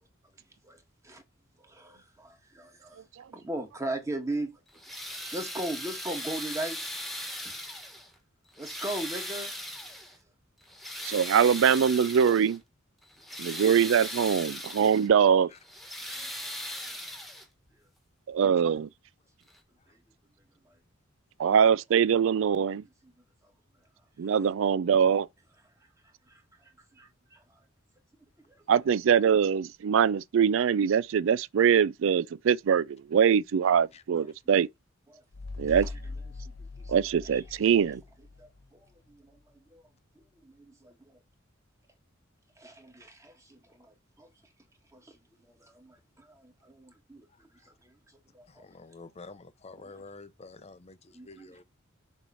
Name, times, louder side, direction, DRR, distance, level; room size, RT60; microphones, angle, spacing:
voice 1, 1.6-3.0 3.3-4.5 5.3-7.6 8.6-9.5 16.1-16.3 26.3-26.4 26.9-27.4 28.5-28.6 35.1-35.2 36.8-36.9 37.3-37.4 38.4-39.4 39.7-39.8 40.4-41.2 42.6-44.3 44.9-45.2 45.6-47.3 47.6-47.9 48.3-48.5 51.1-51.6, right 1 dB, 15° right, 1.5 m, -38 dB
sound 1, 4.7-8.1 8.5-10.2 10.6-12.6 13.0-15.1 15.6-17.7 18.8-18.9 19.5-19.6, left 1 dB, ahead, 1.4 m, -39 dB
voice 2, 11.0-12.6 13.4-15.5 18.3-18.9 21.4-22.8 24.2-25.3 28.7-34.7 35.6-35.9 36.9-38.0, right 7 dB, 65° right, 0.4 m, -23 dB
sound 2, 35.3-38.7, left 3 dB, 75° left, 0.8 m, -41 dB
voice 3, 48.5-51.6, left 3 dB, 30° left, 0.6 m, -48 dB
7.0 x 3.1 x 5.5 m
head